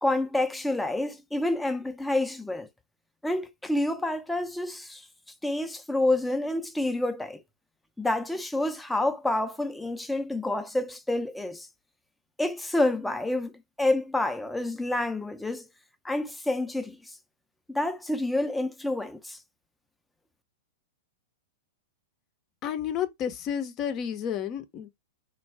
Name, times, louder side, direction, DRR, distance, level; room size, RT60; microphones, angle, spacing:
voice 1, 0.0-2.7 3.2-5.1 5.4-7.4 8.0-11.7 12.4-13.5 13.8-15.7 16.0-17.2 17.7-19.4, left 2 dB, 5° left, 0.6 m, -28 dB
voice 2, 22.6-25.0, left 9 dB, 35° left, 0.8 m, -31 dB
4.4 x 2.3 x 3.4 m
figure-of-eight pair, 100°, 0 cm